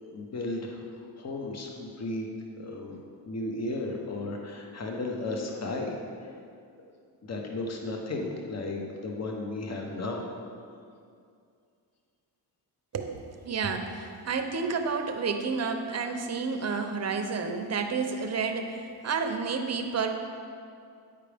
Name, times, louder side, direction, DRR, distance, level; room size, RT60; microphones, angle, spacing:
voice 1, 0.0-0.8 1.2-2.3 2.6-3.0 3.3-5.9 7.2-10.2, left 2 dB, 40° left, 1 dB, 1.0 m, -34 dB
voice 2, 12.9-20.1, right 5 dB, 40° right, 6 dB, 0.6 m, -30 dB
8.5 x 4.9 x 3.4 m, 2.4 s
cardioid pair, 90°, 41 cm